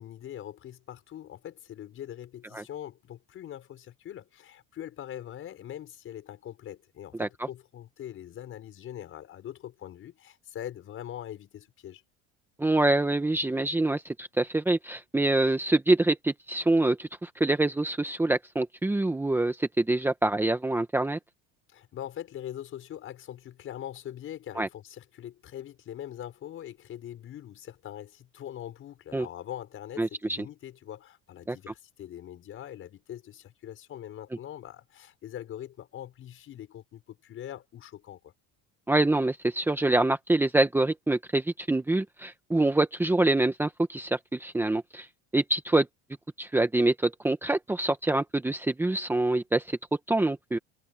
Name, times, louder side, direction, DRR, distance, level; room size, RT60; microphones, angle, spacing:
voice 1, 0.0-12.0 21.7-38.3, left 11 dB, 45° left, 5.6 m, -42 dB
voice 2, 12.6-21.2 24.6-24.7 29.1-29.3 30.0-30.4 31.5-31.6 38.9-45.1 45.3-45.9 46.4-49.8 50.1-50.6, right 2 dB, 5° right, 1.3 m, -25 dB
cardioid pair, 135°, 30 cm